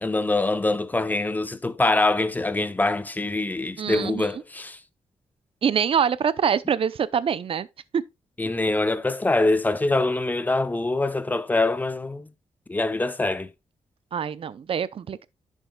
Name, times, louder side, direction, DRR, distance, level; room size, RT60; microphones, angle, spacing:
voice 1, 0.0-4.8 8.4-12.3 12.7-13.5, left 2 dB, 15° left, 0.6 m, -24 dB
voice 2, 3.8-4.3 5.6-7.7 7.9-8.0 14.1-15.3, right 7 dB, 50° right, 0.5 m, -24 dB
10.5 x 7.3 x 2.2 m
wide cardioid pair, 140°, 12 cm